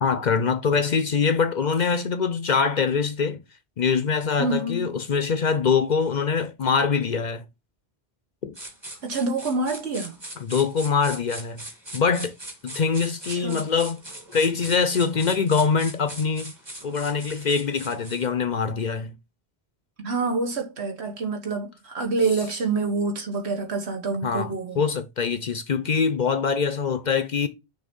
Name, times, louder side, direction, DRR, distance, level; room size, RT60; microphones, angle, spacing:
voice 1, 0.0-3.4 3.8-7.4 8.4-8.6 10.4-11.6 11.9-12.3 12.6-14.0 14.3-16.5 16.8-19.1 24.2-27.5, left 5 dB, 50° left, 0.6 m, -24 dB
voice 2, 4.4-5.0 9.0-10.2 13.3-13.6 20.0-24.8, right 3 dB, 80° right, 1.6 m, -27 dB
sound 1, 8.6-18.3, right 1 dB, 25° right, 1.5 m, -40 dB
6.2 x 2.9 x 5.2 m
omnidirectional pair, 1.1 m